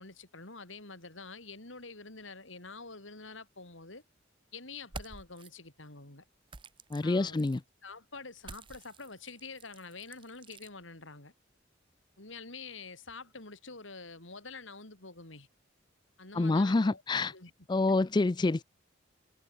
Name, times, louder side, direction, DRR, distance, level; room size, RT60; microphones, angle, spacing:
voice 1, 0.0-4.0 4.5-6.2 7.0-7.5 7.8-11.3 12.2-15.5 16.2-17.0 17.3-17.5 17.9-18.0, left 4 dB, 80° left, 5.0 m, -47 dB
sound 1, 4.8-5.5 6.5-7.6 8.4-10.7, right 3 dB, 25° right, 0.8 m, -49 dB
voice 2, 6.9-7.6 16.3-17.3 17.7-18.6, left 2 dB, 20° left, 0.4 m, -27 dB
head